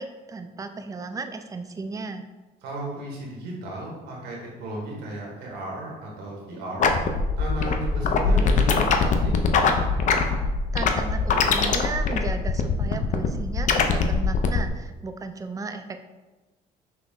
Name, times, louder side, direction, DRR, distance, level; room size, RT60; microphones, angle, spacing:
voice 1, 0.0-2.3 10.7-16.0, right 4 dB, 20° right, 8 dB, 0.3 m, -35 dB
voice 2, 2.6-6.9 7.4-9.3, right 1 dB, 90° right, -2 dB, 1.4 m, -34 dB
sound 1, 6.8-14.7, left 5 dB, 45° left, 0.5 m, -22 dB
5.9 x 2.1 x 3.7 m, 1.2 s
cardioid pair, 110°, 17 cm